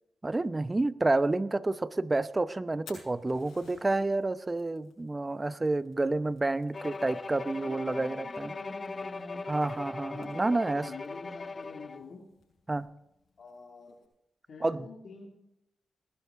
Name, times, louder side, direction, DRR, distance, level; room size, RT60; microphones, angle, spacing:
voice 1, 0.2-8.5 9.5-10.9 12.7-12.9 14.6-14.9, right 2 dB, 30° right, 15 dB, 0.8 m, -29 dB
Fire, 2.6-14.0, left 6 dB, 80° left, 6.3 m, -60 dB
Bowed string instrument, 6.7-12.1, left 3 dB, 40° left, 0.6 m, -40 dB
voice 2, 7.5-9.5 10.1-12.2 13.4-14.0 14.5-15.3, left 4 dB, 65° left, -1 dB, 2.5 m, -47 dB
19.5 x 11.5 x 3.8 m, 0.84 s
supercardioid pair, 45°, 0 cm